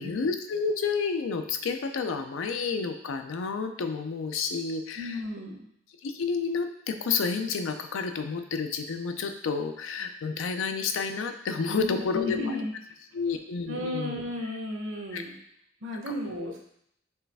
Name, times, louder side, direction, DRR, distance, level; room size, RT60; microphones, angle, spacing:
voice 1, 0.0-5.2 6.0-12.6 13.1-14.2 15.1-15.2 16.2-16.5, left 5 dB, 65° left, 7 dB, 0.4 m, -30 dB
voice 2, 5.0-5.7 11.7-12.7 13.7-15.3 15.8-16.6, left 1 dB, 65° right, 2 dB, 0.8 m, -34 dB
4.6 x 3.2 x 3.4 m, 0.73 s
head